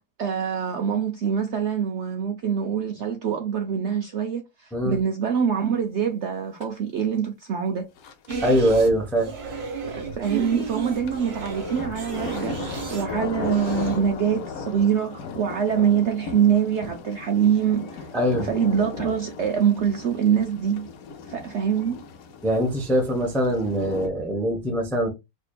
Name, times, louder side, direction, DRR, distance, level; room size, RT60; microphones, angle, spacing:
voice 1, 0.0-7.9 9.9-18.1 18.4-20.9 21.3-22.0, right 8 dB, 70° right, 0.7 m, -24 dB
sound 1, 6.6-6.7 7.0-7.1 8.0-8.7 9.9-24.1, left 5 dB, 70° left, 1.1 m, -37 dB
sound 2, 8.3-14.2, right 5 dB, 45° right, 1.2 m, -33 dB
voice 2, 8.4-9.3 18.1-18.5 22.4-25.1, equal, ahead, 0.4 m, -22 dB
5.0 x 2.6 x 2.2 m
omnidirectional pair, 1.6 m